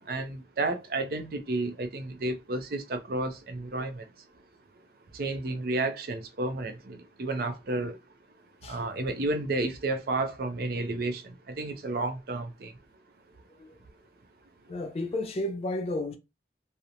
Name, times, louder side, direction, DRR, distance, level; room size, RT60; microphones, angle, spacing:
voice 1, 0.0-4.1 5.1-8.0 8.6-12.8, right 2 dB, 55° right, 0.5 m, -32 dB
voice 2, 14.7-16.2, left 1 dB, 35° left, 0.3 m, -32 dB
2.8 x 2.0 x 2.5 m
head